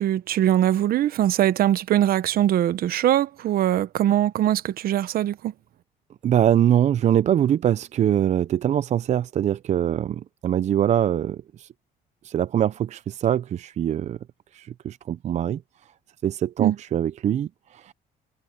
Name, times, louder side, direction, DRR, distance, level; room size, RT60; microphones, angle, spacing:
voice 1, 0.0-5.5 16.6-16.8, right 12 dB, 60° right, 1.0 m, -22 dB
voice 2, 6.2-11.7 12.2-14.2 14.5-15.6 16.2-17.9, right 10 dB, 45° right, 0.5 m, -23 dB
cardioid pair, 110°, 17 cm